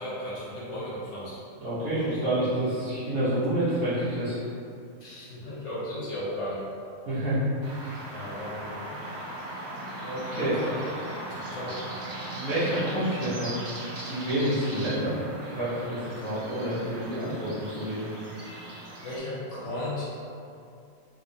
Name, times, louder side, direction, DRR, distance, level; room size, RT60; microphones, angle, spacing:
voice 1, 0.0-1.4 5.0-6.6 8.1-8.7 10.3-10.9 11.3-11.9 19.0-20.0, left 1 dB, 55° left, -8 dB, 1.4 m, -35 dB
voice 2, 1.6-4.4 7.0-7.4 7.8-8.0 10.0-10.6 12.3-13.6 14.1-18.1, right 1 dB, 75° right, -13 dB, 1.5 m, -28 dB
sound 1, 7.6-19.2, right 1 dB, 55° right, 0.5 m, -39 dB
3.5 x 3.2 x 2.7 m, 2.5 s
omnidirectional pair, 1.5 m